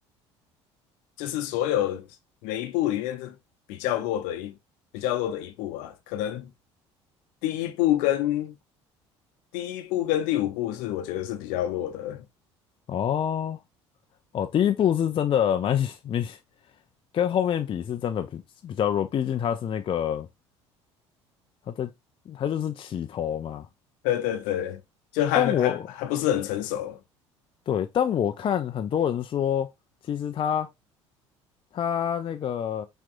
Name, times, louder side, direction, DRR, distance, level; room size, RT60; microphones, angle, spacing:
voice 1, 1.2-2.0 2.4-3.3 3.7-4.5 4.9-6.5 7.4-8.5 9.5-12.2 24.0-24.8 25.1-27.0, left 12 dB, 60° left, 0.8 m, -27 dB
voice 2, 12.9-13.6 14.3-16.4 17.1-20.3 21.7-21.9 22.3-23.7 25.3-25.8 27.7-29.7 30.1-30.7 31.7-32.9, left 9 dB, 35° left, 0.5 m, -26 dB
5.9 x 3.5 x 2.5 m
figure-of-eight pair, 60°, 15 cm